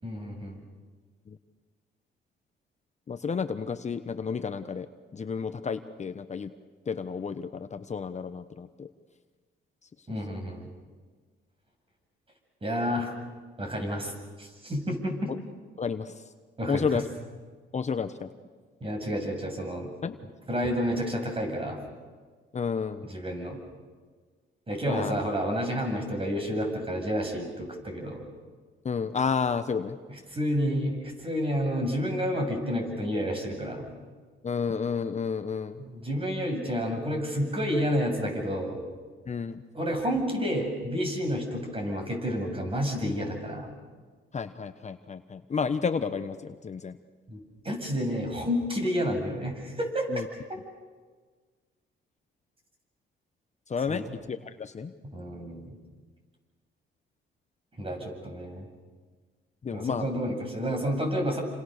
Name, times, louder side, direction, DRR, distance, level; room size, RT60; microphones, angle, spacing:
voice 1, 0.0-0.6 10.1-10.7 12.6-13.1 13.6-14.1 14.4-15.3 16.6-17.0 18.8-19.9 20.5-21.8 23.0-23.6 24.7-28.2 30.1-33.8 35.8-38.8 39.7-43.7 47.3-50.1 50.5-50.6 53.9-54.1 55.1-55.7 57.8-58.7 59.7-61.4, equal, 25° right, 3 dB, 7.7 m, -30 dB
voice 2, 3.1-4.9 5.1-6.5 6.9-8.9 15.8-16.1 16.7-17.0 17.7-18.3 20.0-20.1 22.5-23.1 24.8-25.1 25.8-25.9 28.8-30.0 34.4-35.8 39.3-39.6 44.3-47.0 50.1-50.3 53.7-54.9 59.6-60.1, left 5 dB, 35° left, 9 dB, 1.1 m, -31 dB
29.0 x 26.5 x 6.7 m, 1.5 s
cardioid pair, 90°, 20 cm